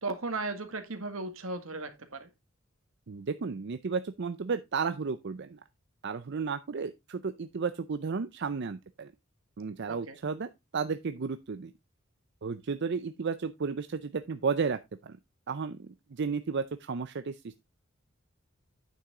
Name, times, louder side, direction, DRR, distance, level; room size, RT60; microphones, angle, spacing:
voice 1, 0.0-2.3 9.9-10.2, right 3 dB, 80° right, 1.9 m, -36 dB
voice 2, 3.1-5.6 6.0-9.1 9.6-11.7 12.4-15.2 15.5-17.5, right 5 dB, 55° right, 0.5 m, -33 dB
9.1 x 6.8 x 3.7 m
head